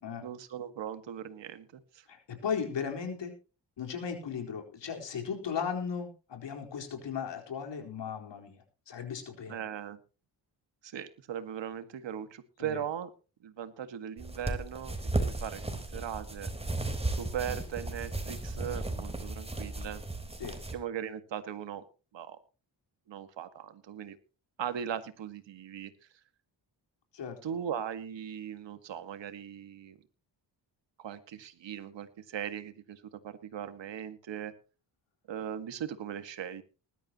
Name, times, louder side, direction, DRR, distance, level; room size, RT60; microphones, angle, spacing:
voice 1, 0.2-2.1 9.5-10.0 10.8-13.1 13.4-16.5 17.1-20.0 20.7-21.9 22.1-22.4 23.1-24.2 24.6-25.9 27.4-30.0 31.0-34.5 35.3-36.6, right 9 dB, 90° right, 10 dB, 1.8 m, -39 dB
voice 2, 2.1-3.3 3.8-9.6 12.6-12.8 20.4-20.6 27.1-27.4, left 6 dB, 80° left, 3 dB, 4.3 m, -36 dB
sound 1, 14.2-20.7, right 2 dB, 15° right, 4.0 m, -35 dB
20.5 x 12.5 x 2.9 m, 0.34 s
cardioid pair, 95°, 43 cm